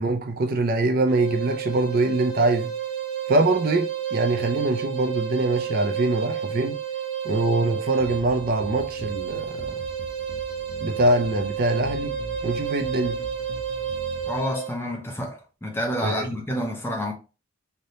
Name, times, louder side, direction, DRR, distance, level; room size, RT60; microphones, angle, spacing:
voice 1, 0.0-2.7 3.3-6.8 7.2-9.8 10.8-12.1 12.4-13.2 16.0-16.3, right 2 dB, 45° right, 0.4 m, -23 dB
sound 1, 1.1-14.8, right 8 dB, 70° right, 0.8 m, -31 dB
sound 2, 8.0-14.4, left 2 dB, 60° left, 0.5 m, -42 dB
voice 2, 14.3-17.1, equal, 10° left, 0.7 m, -29 dB
3.3 x 2.8 x 2.6 m
head